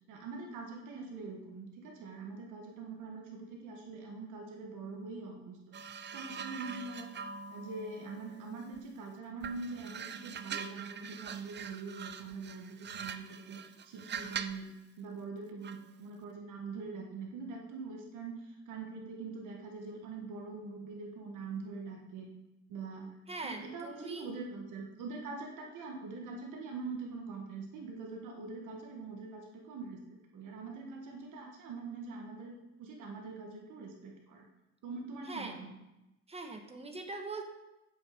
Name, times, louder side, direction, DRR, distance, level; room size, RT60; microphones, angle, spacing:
voice 1, 0.1-5.6 6.1-7.2 7.5-13.6 13.8-14.7 15.0-22.3 22.7-23.1 23.4-30.0 30.3-34.4 34.8-35.8, right 4 dB, 85° right, 0 dB, 1.6 m, -43 dB
sound 1, 5.7-9.0 9.4-14.7 15.6-15.9, right 6 dB, 35° right, 0.5 m, -43 dB
voice 2, 23.3-24.3 35.3-35.6 36.3-37.5, right 3 dB, 20° right, 4 dB, 1.4 m, -42 dB
7.8 x 6.2 x 5.1 m, 0.94 s
cardioid pair, 90°, 30 cm